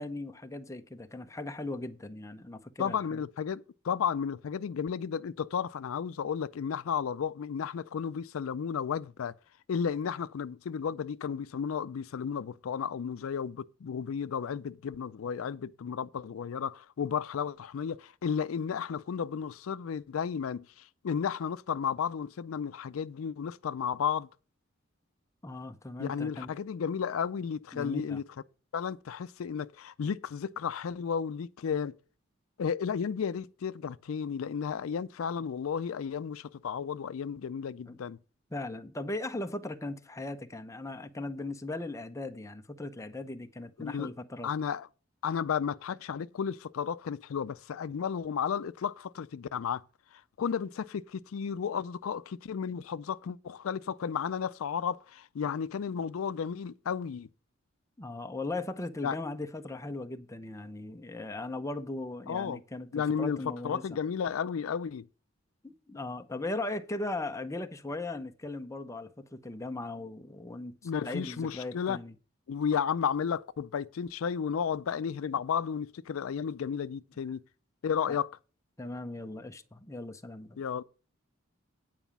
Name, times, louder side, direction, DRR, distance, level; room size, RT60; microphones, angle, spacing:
voice 1, 0.0-3.2 25.4-26.5 27.7-28.2 37.9-38.0 38.5-44.5 58.0-64.0 65.6-70.8 71.0-72.1 78.1-78.2 78.8-80.6, left 2 dB, 15° left, 0.6 m, -38 dB
voice 2, 2.8-9.3 9.7-20.6 21.0-24.3 26.0-28.2 28.7-31.9 32.6-38.2 43.8-44.1 44.4-44.9 45.2-49.8 50.4-57.3 59.0-59.1 62.3-62.6 62.9-65.0 70.8-72.0 72.5-77.4 77.8-78.3 80.6-80.8, left 7 dB, 85° left, 0.4 m, -33 dB
9.2 x 4.9 x 6.9 m
head